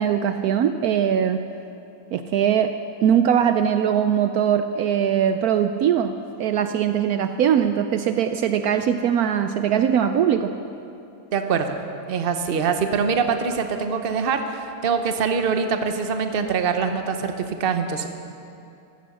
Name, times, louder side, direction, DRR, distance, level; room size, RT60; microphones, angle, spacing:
voice 1, 0.0-1.4 2.1-2.7 3.0-10.5, right 9 dB, 70° right, 8 dB, 1.0 m, -21 dB
voice 2, 11.3-11.8 12.1-18.1, right 5 dB, 40° right, 7 dB, 1.0 m, -24 dB
15.0 x 14.0 x 6.4 m, 2.7 s
omnidirectional pair, 1.7 m